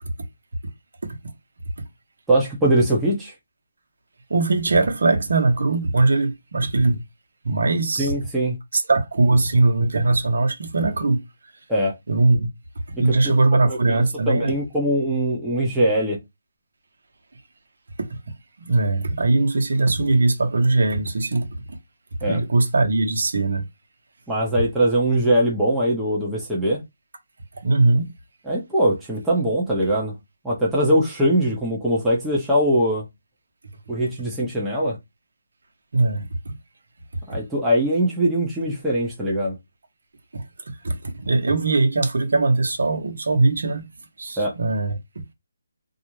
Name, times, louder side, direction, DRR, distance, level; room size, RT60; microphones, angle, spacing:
voice 1, 2.3-3.3 8.0-8.6 11.7-11.9 12.9-13.1 13.7-16.2 22.2-22.4 24.3-26.8 28.5-30.1 30.4-33.0 33.9-35.0 37.3-39.6 44.4-44.5, right 1 dB, 5° right, 0.7 m, -21 dB
voice 2, 4.3-7.0 7.4-8.1 8.7-11.2 12.1-12.5 13.0-14.5 18.0-18.2 18.6-21.5 22.2-23.6 27.6-28.1 35.9-36.6 37.3-37.4 40.3-43.8 44.2-45.0, right 2 dB, 70° right, 0.8 m, -20 dB
2.4 x 2.1 x 3.0 m
hypercardioid pair, 165°, 0 cm